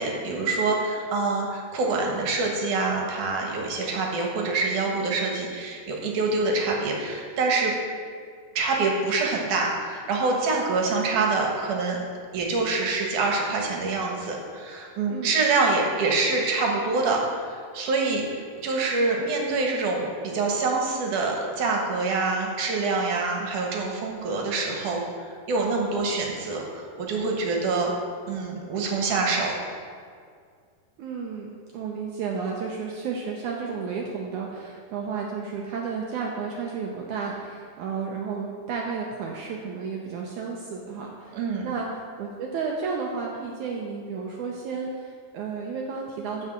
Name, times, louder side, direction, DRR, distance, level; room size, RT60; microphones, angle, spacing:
voice 1, 0.0-7.7 8.6-12.0 12.3-18.3 18.6-25.0 25.5-27.9 28.3-29.6 41.3-41.7, right 3 dB, 60° right, 0 dB, 2.4 m, -25 dB
voice 2, 31.0-46.5, right 5 dB, 85° right, -1 dB, 1.7 m, -32 dB
12.0 x 5.5 x 7.6 m, 2.1 s
omnidirectional pair, 4.7 m